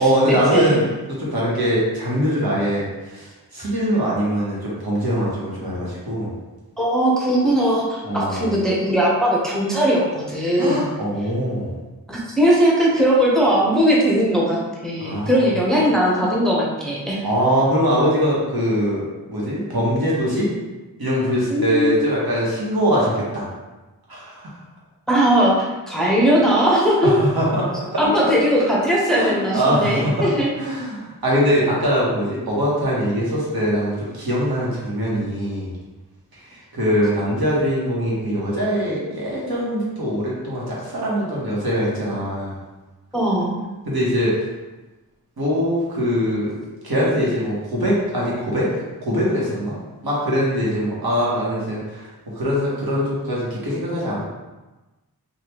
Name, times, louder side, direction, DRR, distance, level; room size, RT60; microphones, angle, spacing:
voice 1, 0.0-3.3 3.5-6.3 8.0-8.5 10.6-11.7 15.0-15.5 17.2-20.5 21.0-23.5 24.1-24.5 27.0-28.0 29.1-30.3 30.6-35.7 36.7-42.5 43.9-44.4 45.4-46.6 46.8-48.7 49.0-49.8 50.0-54.2, equal, 75° right, -6 dB, 1.1 m, -22 dB
voice 2, 6.8-10.9 12.1-14.6 14.8-17.3 21.5-22.1 25.1-25.5 25.9-27.1 28.0-30.5 43.1-43.7, equal, ahead, -5 dB, 0.7 m, -19 dB
3.3 x 2.4 x 2.9 m, 1.1 s
wide cardioid pair, 65°, 37 cm